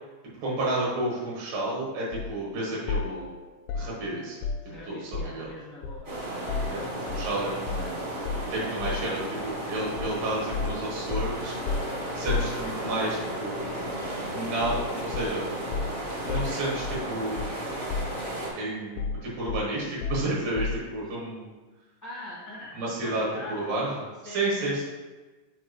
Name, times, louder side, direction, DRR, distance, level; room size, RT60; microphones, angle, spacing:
voice 1, 0.4-3.3 3.7-4.4 4.9-5.5 6.7-8.0 8.5-9.4 9.7-11.6 12.1-13.6 14.3-15.4 16.2-17.4 18.5-21.5 22.8-24.8, right 2 dB, 85° right, -5 dB, 3.1 m, -31 dB
sound 1, 2.1-2.3 2.9-5.5 5.8-7.3 7.7-7.9 8.2-9.1 10.0-10.2 10.5-13.1 14.6-14.9 15.1-17.6 17.9-18.5 19.0-20.9, left 5 dB, 85° left, 2.1 m, -33 dB
voice 2, 4.6-6.1 22.0-23.8 24.2-24.8, left 1 dB, 25° left, -10 dB, 0.4 m, -42 dB
sound 2, 6.0-18.5, right 1 dB, 55° right, 0.8 m, -34 dB
7.2 x 4.5 x 3.1 m, 1.3 s
omnidirectional pair, 3.8 m